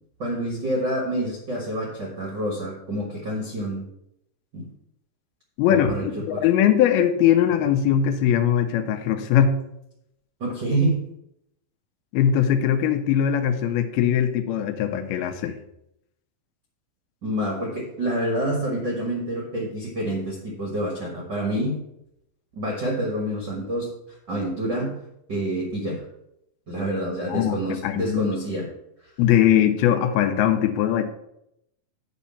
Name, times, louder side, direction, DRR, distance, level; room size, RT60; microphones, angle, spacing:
voice 1, 0.2-3.8 4.5-4.7 5.7-6.4 10.4-11.0 17.2-21.8 22.5-25.0 25.3-26.1 26.7-28.7 29.0-29.1, right 1 dB, 60° right, -1 dB, 1.1 m, -27 dB
voice 2, 5.6-5.9 6.3-9.6 12.1-15.6 27.3-28.3 29.2-31.0, left 9 dB, 80° left, 7 dB, 2.5 m, -20 dB
8.3 x 4.2 x 6.9 m, 0.79 s
omnidirectional pair, 4.5 m